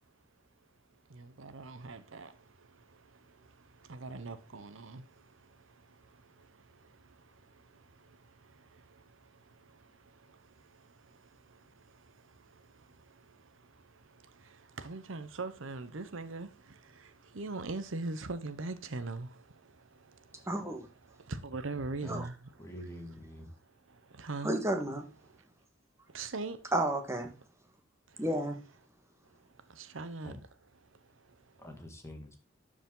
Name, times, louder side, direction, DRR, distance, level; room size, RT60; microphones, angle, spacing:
voice 1, 1.1-22.5 23.6-24.6 25.2-25.4 26.1-26.7 28.1-28.2 29.3-30.4 30.8-31.7, right 3 dB, 70° right, 0.8 m, -44 dB
voice 2, 20.5-20.9 22.1-22.3 24.4-25.0 26.7-27.3 28.2-28.6, right 1 dB, 15° right, 1.5 m, -31 dB
voice 3, 22.6-23.5 30.2-30.4 31.6-32.4, equal, 15° left, 1.7 m, -45 dB
12.5 x 5.0 x 3.8 m
head